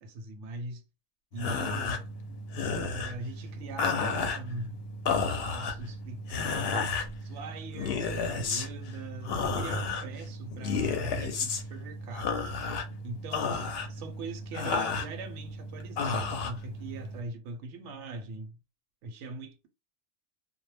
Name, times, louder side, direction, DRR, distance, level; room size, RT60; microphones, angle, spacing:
voice 1, 0.0-0.8 1.3-2.1 2.7-4.9 5.3-6.6 7.2-12.4 13.0-13.6 13.9-18.6 19.0-19.7, right 2 dB, 85° right, 0.9 m, -41 dB
sound 1, 1.3-17.2, left 4 dB, 65° left, 0.7 m, -33 dB
2.1 x 2.0 x 3.1 m
omnidirectional pair, 1.2 m